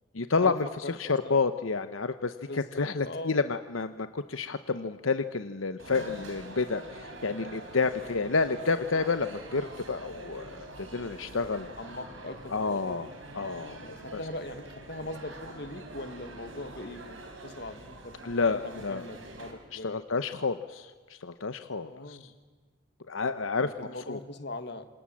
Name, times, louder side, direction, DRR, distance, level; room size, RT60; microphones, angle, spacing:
voice 1, 0.1-0.7 1.0-11.7 12.5-13.1 13.3-14.2 18.2-19.0 19.7-22.2 23.1-23.7 24.1-24.2, left 4 dB, 80° left, 10 dB, 0.9 m, -30 dB
voice 2, 0.8-1.4 2.4-3.4 7.9-8.2 11.7-13.0 13.9-19.9 21.8-22.3 23.6-24.9, left 2 dB, 55° left, 9 dB, 1.8 m, -41 dB
sound 1, 5.8-19.5, right 2 dB, 75° right, 4.8 m, -45 dB
27.0 x 27.0 x 7.7 m, 1.4 s
head